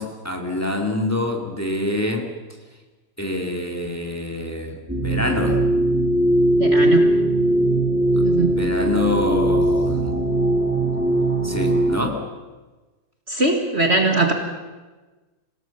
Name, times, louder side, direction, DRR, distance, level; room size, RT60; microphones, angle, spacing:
voice 1, 0.0-2.3 3.2-5.6 7.6-7.7 8.1-8.2 8.5-10.2 11.4-12.2, left 1 dB, 10° left, 2 dB, 2.4 m, -26 dB
sound 1, 4.9-12.0, right 1 dB, 5° right, 2.1 m, -20 dB
voice 2, 6.6-7.1 8.2-8.6 13.3-14.3, right 2 dB, 40° right, 4 dB, 2.0 m, -20 dB
26.5 x 18.0 x 7.2 m, 1.2 s
omnidirectional pair, 1.8 m